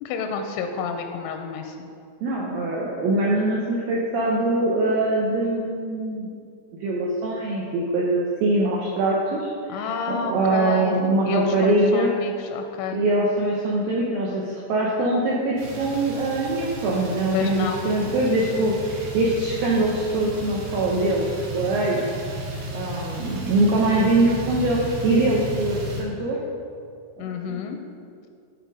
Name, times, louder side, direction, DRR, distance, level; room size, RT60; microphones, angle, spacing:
voice 1, 0.0-1.9 9.7-11.0 11.3-13.0 17.3-17.8 27.2-27.8, left 5 dB, 90° left, 5 dB, 3.0 m, -29 dB
voice 2, 2.2-6.3 6.8-12.1 12.9-21.3 21.5-22.2 22.7-26.4 27.2-27.8, right 2 dB, 90° right, -3 dB, 2.0 m, -23 dB
sound 1, 15.6-26.0, right 1 dB, 55° right, 2.5 m, -34 dB
10.5 x 4.6 x 5.2 m, 2.3 s
omnidirectional pair, 5.3 m